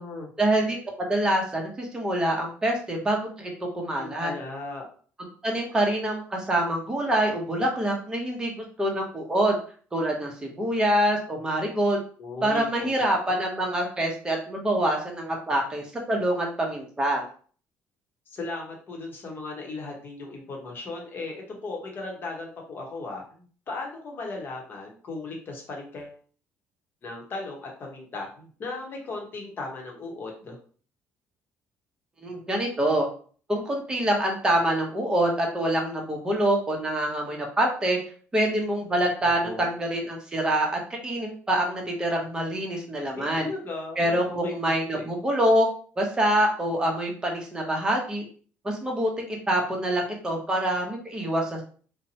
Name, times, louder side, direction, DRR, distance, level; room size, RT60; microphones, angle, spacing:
voice 1, 0.4-4.3 5.2-9.6 9.9-12.0 12.4-17.3 32.2-33.1 33.5-38.0 38.3-43.5 44.0-45.7 46.0-48.2 48.6-51.6, right 1 dB, 15° right, 0 dB, 0.8 m, -26 dB
voice 2, 4.0-4.9 12.2-12.9 18.3-26.2 27.0-30.6 39.2-39.7 43.1-44.5 44.9-45.0, left 3 dB, 40° left, 0 dB, 0.9 m, -37 dB
2.8 x 2.1 x 2.7 m, 0.43 s
cardioid pair, 115°, 5 cm